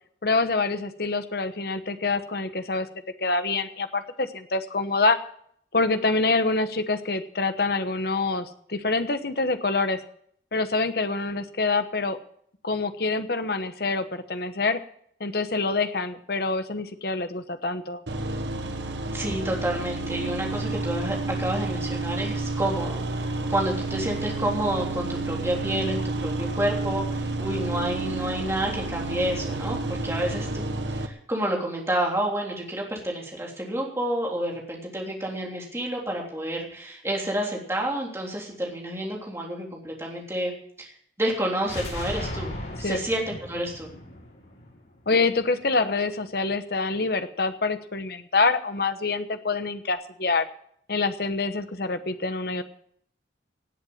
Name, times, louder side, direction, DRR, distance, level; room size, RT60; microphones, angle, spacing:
voice 1, 0.2-2.9 3.2-5.2 5.7-10.0 10.5-12.2 12.6-14.8 15.2-18.0 42.8-43.0 45.1-50.5 50.9-52.6, left 3 dB, 55° left, 9 dB, 1.1 m, -26 dB
sound 1, 18.1-31.1, right 2 dB, 75° right, 1.4 m, -30 dB
voice 2, 19.1-30.6 30.9-40.5 40.8-40.9 41.2-42.5 42.8-43.9, right 1 dB, 15° right, -1 dB, 3.3 m, -29 dB
sound 2, 41.6-45.4, left 1 dB, 75° left, 7.3 m, -36 dB
17.5 x 8.1 x 7.2 m, 0.65 s
head